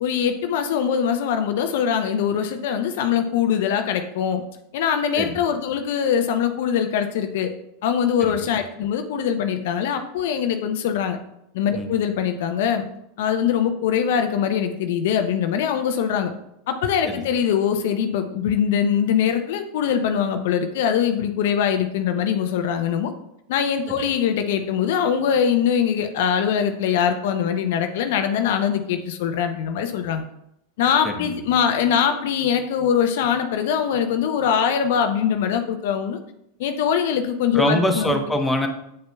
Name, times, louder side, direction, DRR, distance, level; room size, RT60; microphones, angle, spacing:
voice 1, 0.0-4.4 4.7-7.5 7.8-11.2 11.5-12.9 13.2-16.3 16.7-23.1 23.5-30.2 30.8-36.2 36.6-38.1, left 8 dB, 65° left, 7 dB, 0.6 m, -22 dB
voice 2, 37.5-38.7, equal, 5° left, 2 dB, 1.0 m, -23 dB
7.8 x 6.6 x 2.3 m, 0.79 s
hypercardioid pair, 95°, 0 cm